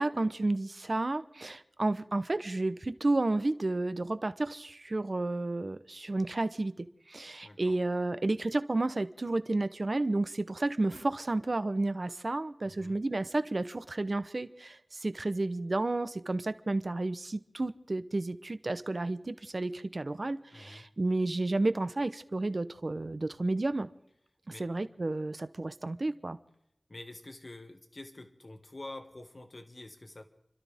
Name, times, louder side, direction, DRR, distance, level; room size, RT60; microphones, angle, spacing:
voice 1, 0.0-23.9 24.6-26.4, right 2 dB, 50° right, 12 dB, 0.9 m, -31 dB
voice 2, 7.4-7.8 12.6-13.0 20.5-20.9 24.5-24.7 26.9-30.2, left 2 dB, 50° left, 5 dB, 1.9 m, -47 dB
30.0 x 12.5 x 3.6 m, 0.77 s
wide cardioid pair, 65°, 0 cm